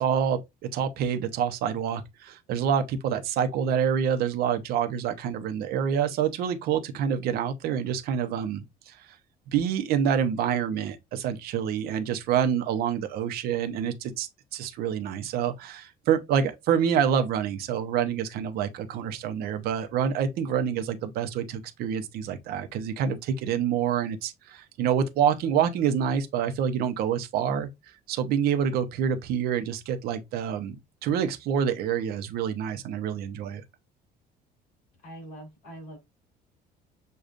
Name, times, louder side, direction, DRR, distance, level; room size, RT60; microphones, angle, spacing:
voice 1, 0.0-9.1 9.5-27.7 28.1-30.8 31.0-33.6, right 8 dB, 65° right, 0.7 m, -27 dB
voice 2, 35.0-36.0, right 1 dB, 45° left, 2.9 m, -43 dB
6.5 x 2.3 x 2.5 m
cardioid pair, 160°, 17 cm